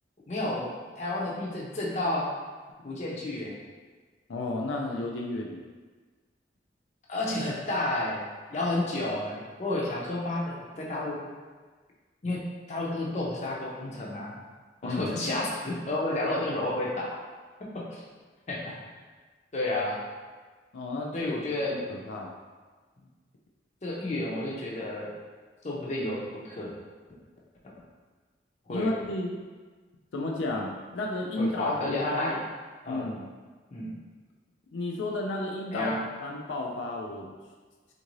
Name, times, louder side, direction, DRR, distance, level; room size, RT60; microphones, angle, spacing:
voice 1, 0.3-0.7 1.0-2.3 2.8-3.6 7.1-8.2 8.5-11.2 12.2-14.3 14.8-17.2 17.7-18.0 18.5-18.8 19.5-20.0 21.1-21.9 23.8-25.1 25.6-26.7 28.7-28.9 31.4-32.4 32.8-33.1 33.7-33.9 35.7-36.0, left 2 dB, 40° left, -4 dB, 0.6 m, -31 dB
voice 2, 4.3-5.6 14.8-15.2 20.7-21.3 21.9-22.3 28.7-29.3 30.1-32.4 32.9-33.2 34.7-35.9 36.2-37.3, left 2 dB, 85° left, 0 dB, 0.4 m, -32 dB
3.6 x 2.5 x 3.0 m, 1.4 s
head